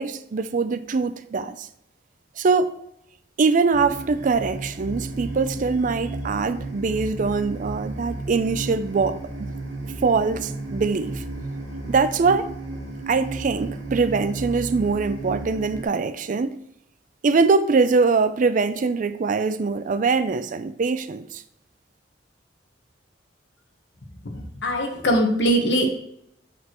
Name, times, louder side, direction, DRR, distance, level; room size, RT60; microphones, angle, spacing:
voice 1, 0.0-1.7 2.4-2.8 3.4-9.1 9.4-9.5 10.0-11.2 11.9-12.5 13.1-16.6 17.2-21.4, right 4 dB, 45° right, 0.4 m, -22 dB
sound 1, 3.7-15.8, right 2 dB, 85° right, 1.8 m, -33 dB
voice 2, 24.2-25.9, right 1 dB, 70° left, 1.3 m, -22 dB
7.4 x 6.2 x 3.0 m
head